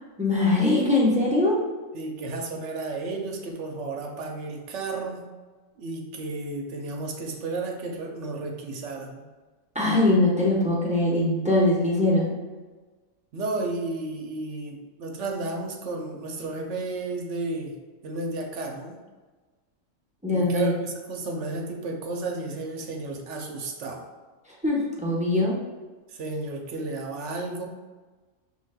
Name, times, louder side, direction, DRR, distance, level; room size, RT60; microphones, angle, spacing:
voice 1, 0.2-1.6 9.7-12.4 20.2-20.7 24.6-25.6, left 2 dB, 5° right, -5 dB, 0.8 m, -22 dB
voice 2, 1.9-5.2 5.8-9.2 13.3-17.8 18.0-18.9 20.3-24.0 26.1-27.6, right 3 dB, 65° right, 2 dB, 1.0 m, -33 dB
6.3 x 3.5 x 2.2 m, 1.3 s
omnidirectional pair, 1.4 m